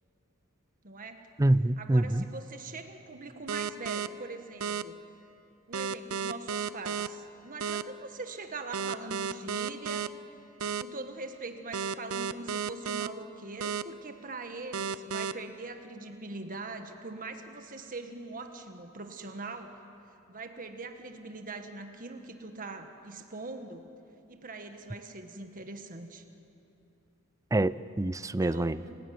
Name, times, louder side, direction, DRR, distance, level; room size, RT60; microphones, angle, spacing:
voice 1, 0.8-1.3 1.8-5.0 5.7-10.1 10.6-19.8 20.3-23.9 24.3-26.2 28.4-29.0, right 3 dB, 40° right, 6 dB, 1.6 m, -42 dB
voice 2, 1.4-2.3 27.5-28.8, right 1 dB, 15° right, 17 dB, 0.5 m, -26 dB
sound 1, 3.5-4.1 4.6-4.8 5.7-7.1 7.6-7.8 8.7-10.1 10.6-10.8 11.7-13.1 13.6-13.8 14.7-15.3, right 7 dB, 80° right, 0.7 m, -32 dB
29.5 x 16.5 x 9.4 m, 2.7 s
head